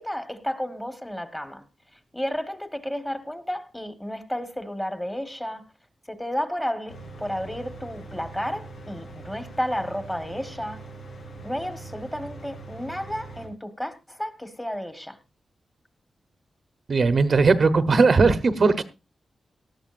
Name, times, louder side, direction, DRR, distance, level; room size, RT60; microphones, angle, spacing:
voice 1, 0.0-1.6 2.1-5.6 6.1-10.9 11.4-15.2, equal, 10° left, 1.5 m, -32 dB
Mechanical fan, 6.9-13.5, right 3 dB, 90° left, 6.5 m, -42 dB
voice 2, 16.9-18.8, right 4 dB, 50° right, 1.0 m, -18 dB
18.5 x 12.5 x 2.5 m
wide cardioid pair, 105°, 0 cm